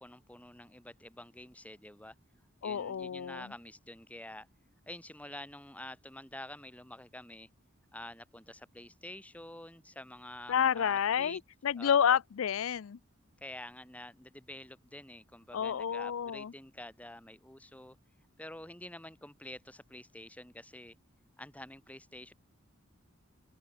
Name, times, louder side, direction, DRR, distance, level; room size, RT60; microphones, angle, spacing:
voice 1, 0.0-2.1 2.6-4.5 4.9-7.5 7.9-11.4 11.8-12.2 13.4-18.0 18.4-20.9 21.4-22.3, left 1 dB, 5° left, 2.7 m, -48 dB
voice 2, 2.6-3.4 10.5-13.0 15.5-16.5, left 8 dB, 85° left, 0.4 m, -29 dB
open air
head